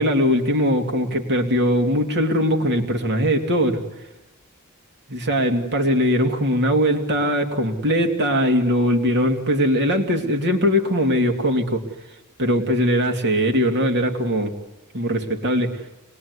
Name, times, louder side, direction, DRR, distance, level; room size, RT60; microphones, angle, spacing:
voice 1, 0.0-3.8 5.1-11.8 12.4-14.5 14.9-15.8, equal, 55° right, 4 dB, 2.7 m, -20 dB
26.5 x 21.0 x 9.6 m, 0.98 s
head